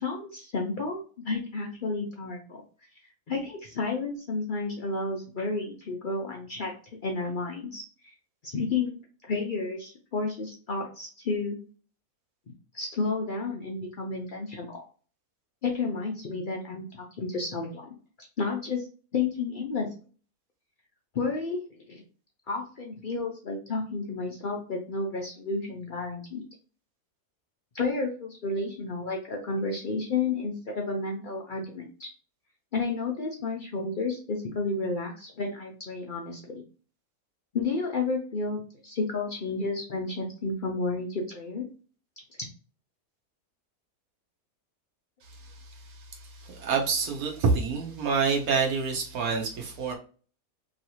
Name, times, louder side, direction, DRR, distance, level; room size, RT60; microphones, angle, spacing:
voice 1, 0.0-2.6 3.3-6.7 7.0-8.1 8.4-8.9 9.2-11.6 12.7-14.8 15.6-17.9 18.4-18.9 19.1-19.9 21.1-21.6 21.9-22.0 22.5-26.4 27.7-32.1 32.7-36.4 37.5-41.7, left 3 dB, 70° left, 0 dB, 0.4 m, -31 dB
voice 2, 45.2-49.9, right 5 dB, 75° right, 1 dB, 1.2 m, -28 dB
3.1 x 2.8 x 2.8 m, 0.39 s
omnidirectional pair, 1.6 m